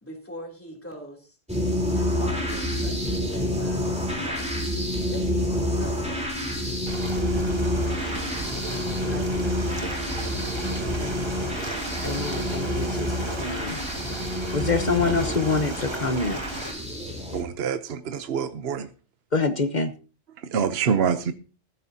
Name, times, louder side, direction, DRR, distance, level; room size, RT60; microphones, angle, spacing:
voice 1, 0.0-1.4 1.9-4.6 5.1-6.2 9.0-9.6, equal, 10° left, 3.1 m, -41 dB
sound 1, 1.5-17.4, left 1 dB, 5° right, 3.6 m, -28 dB
Ocean, 6.9-16.7, right 2 dB, 20° right, 1.4 m, -35 dB
voice 2, 12.0-13.1 13.4-13.8 14.5-16.7 19.3-19.9, left 4 dB, 40° left, 1.1 m, -26 dB
voice 3, 17.3-18.9 20.4-21.3, right 7 dB, 55° right, 1.0 m, -26 dB
14.5 x 14.0 x 2.8 m
omnidirectional pair, 1.3 m